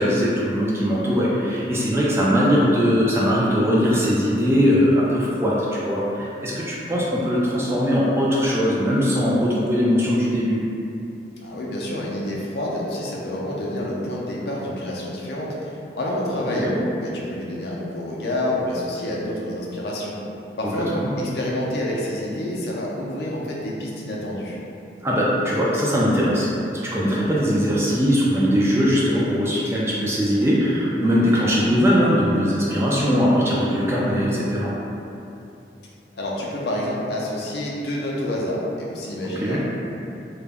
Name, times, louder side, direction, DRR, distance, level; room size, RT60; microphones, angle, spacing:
voice 1, 0.0-10.6 16.6-16.8 20.9-21.3 25.0-34.7 39.4-39.6, equal, 15° right, -6 dB, 0.3 m, -20 dB
voice 2, 11.4-20.2 20.6-20.9 21.2-24.6 36.1-39.6, left 1 dB, 65° left, -4 dB, 0.4 m, -28 dB
2.2 x 2.0 x 3.3 m, 2.7 s
head